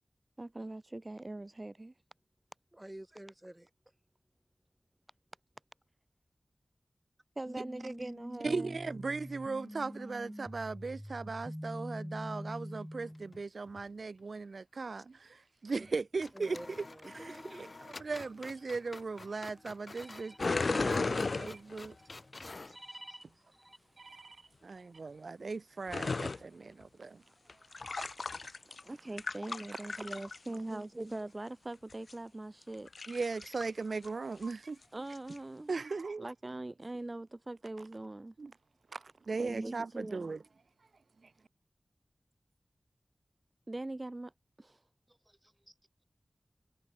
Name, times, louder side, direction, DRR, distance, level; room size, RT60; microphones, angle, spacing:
voice 1, 0.4-1.9 7.4-8.8 17.2-17.6 28.6-32.9 34.9-35.7 36.2-38.3 39.4-40.3 43.7-44.3 44.6-44.8, right 2 dB, 40° right, 0.9 m, -42 dB
voice 2, 2.7-3.7 15.8-15.9 16.3-17.1 19.9-20.4 20.7-21.0 22.2-22.3 22.7-23.8 45.1-45.7, right 1 dB, 20° right, 2.1 m, -50 dB
sound 1, 7.5-13.4, equal, 5° left, 1.9 m, -44 dB
voice 3, 8.4-16.6 17.1-17.7 18.0-22.0 24.0-27.2 30.7-30.9 33.1-34.8 35.7-36.3 38.4-38.5 38.9-40.4 41.2-41.3, right 4 dB, 85° right, 0.4 m, -38 dB
sound 2, 13.1-13.9 14.2-14.3 15.8-15.9 16.2-22.8, left 3 dB, 60° left, 2.2 m, -51 dB
sound 3, 20.4-21.9 25.9-26.4 27.5-28.9 29.2-30.5 31.9-32.1 32.7-33.7 34.0-34.1 34.4-34.5 35.1-35.4, left 3 dB, 80° left, 0.6 m, -34 dB
wide cardioid pair, 45°, 0 cm